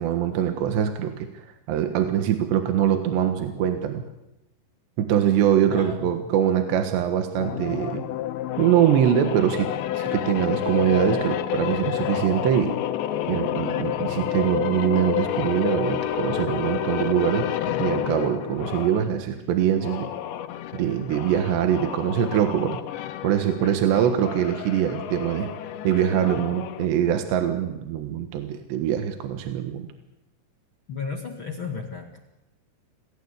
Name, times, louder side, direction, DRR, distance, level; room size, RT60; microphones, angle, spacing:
voice 1, 0.0-4.0 5.0-8.0 8.6-12.8 13.3-20.1 20.7-22.8 23.2-25.5 25.8-29.9, right 10 dB, 75° right, 6 dB, 3.6 m, -23 dB
voice 2, 5.8-6.2 30.9-32.2, left 5 dB, 45° left, 3 dB, 1.6 m, -33 dB
sound 1, 7.4-19.1 19.7-26.9, left 12 dB, 80° left, 3.4 m, -29 dB
27.0 x 19.0 x 8.3 m, 0.93 s
omnidirectional pair, 5.1 m